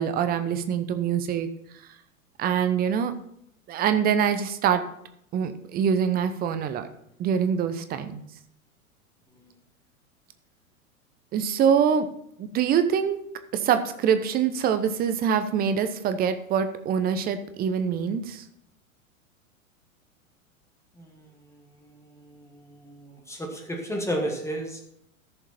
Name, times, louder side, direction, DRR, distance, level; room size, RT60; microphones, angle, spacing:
voice 1, 0.0-1.5 2.4-3.1 3.7-4.8 5.3-6.9 7.2-8.2 11.3-12.1 12.4-13.2 13.5-18.4, right 7 dB, 20° right, 10 dB, 0.8 m, -24 dB
voice 2, 23.3-24.8, equal, 5° left, 2 dB, 1.6 m, -30 dB
14.0 x 6.8 x 4.3 m, 0.74 s
figure-of-eight pair, 95°, 41 cm